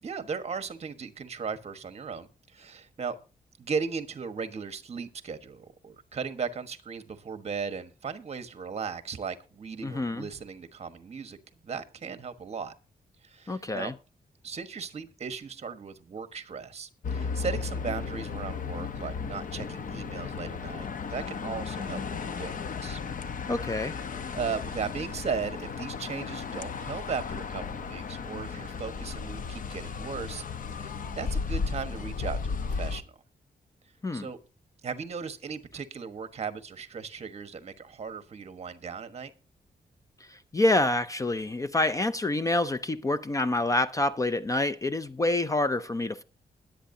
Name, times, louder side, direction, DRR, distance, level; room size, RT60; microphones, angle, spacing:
voice 1, 0.0-3.2 3.6-11.4 11.6-12.7 13.2-13.9 14.4-22.5 22.8-23.0 24.3-30.4 30.7-33.1 34.1-34.4 34.8-39.3, right 5 dB, 40° right, 1.3 m, -37 dB
voice 2, 9.8-10.3 13.5-13.9 23.5-23.9 34.0-34.3 40.3-46.2, left 2 dB, 20° left, 0.5 m, -27 dB
sound 1, 17.0-33.0, left 5 dB, 55° left, 0.9 m, -35 dB
21.5 x 8.6 x 2.7 m
wide cardioid pair, 170°, 16 cm